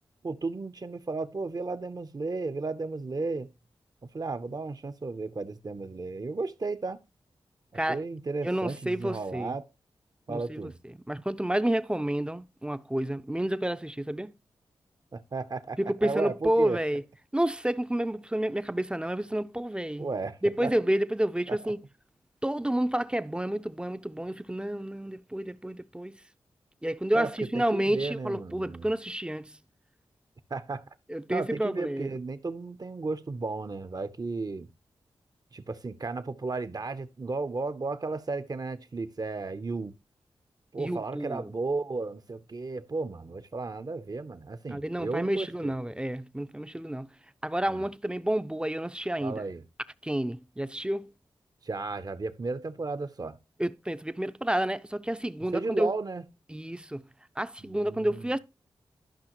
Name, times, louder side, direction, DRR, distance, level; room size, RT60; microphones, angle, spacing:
voice 1, 0.2-3.5 4.1-7.0 7.7-9.7 10.3-10.7 15.1-16.8 20.0-20.7 21.5-21.6 27.1-27.3 27.5-28.9 30.5-30.8 31.3-34.7 35.5-39.9 40.7-45.7 47.7-47.9 49.2-49.6 51.6-53.4 55.5-56.2 57.6-58.3, right 3 dB, 45° right, 0.7 m, -34 dB
voice 2, 8.4-9.5 10.3-10.7 11.1-14.3 15.8-17.0 17.3-20.1 20.4-21.8 22.4-26.2 26.8-29.6 31.1-32.1 40.8-41.5 44.7-47.1 47.4-49.4 50.0-51.1 53.6-55.9 56.5-57.0 57.4-58.4, right 1 dB, 10° right, 0.5 m, -30 dB
12.5 x 5.6 x 3.0 m
cardioid pair, 40°, 9 cm